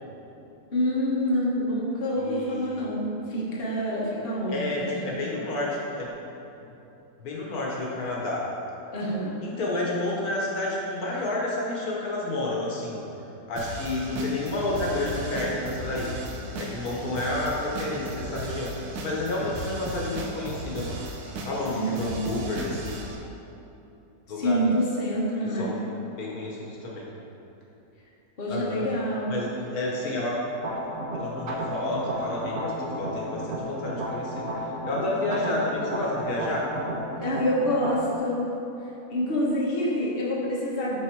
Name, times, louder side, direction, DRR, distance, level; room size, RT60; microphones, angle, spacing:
voice 1, 0.7-5.2 8.9-9.3 21.7-22.2 24.3-25.7 28.4-29.3 35.4-35.5 37.2-38.5 39.1-41.0, equal, 40° left, -6 dB, 1.4 m, -27 dB
voice 2, 2.2-2.9 4.5-6.1 7.2-8.4 9.4-13.1 13.5-16.1 16.6-21.0 21.4-23.0 24.3-24.6 25.5-27.1 28.5-28.9 29.3-30.3 31.1-34.5 34.9-36.8, left 2 dB, 75° left, -4 dB, 1.5 m, -30 dB
sound 1, 13.6-23.2, right 2 dB, 90° right, 1.2 m, -36 dB
sound 2, 30.6-37.9, right 1 dB, 45° right, 0.8 m, -33 dB
9.4 x 3.5 x 4.5 m, 2.9 s
omnidirectional pair, 1.6 m